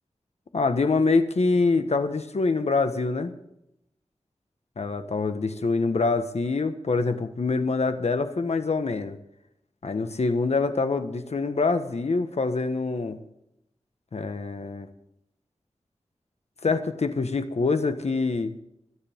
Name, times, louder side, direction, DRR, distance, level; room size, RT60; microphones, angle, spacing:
voice 1, 0.5-3.3 4.8-9.2 9.8-13.2 14.1-14.9 16.6-18.5, left 3 dB, 70° left, 9 dB, 1.5 m, -25 dB
27.0 x 9.9 x 3.7 m, 0.80 s
wide cardioid pair, 60°, 11 cm